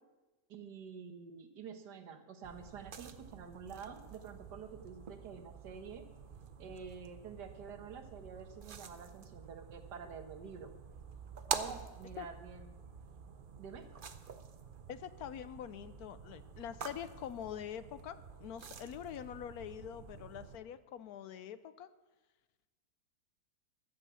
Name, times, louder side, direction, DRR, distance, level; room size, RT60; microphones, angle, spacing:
voice 1, 0.5-6.0 6.6-10.7 11.5-12.7 13.6-13.8, right 6 dB, 75° right, 7 dB, 1.7 m, -48 dB
sound 1, 2.4-20.6, right 6 dB, 50° right, 0.6 m, -47 dB
voice 2, 14.9-21.9, left 9 dB, 75° left, 13 dB, 1.0 m, -45 dB
13.0 x 8.4 x 7.0 m, 1.2 s
omnidirectional pair, 1.8 m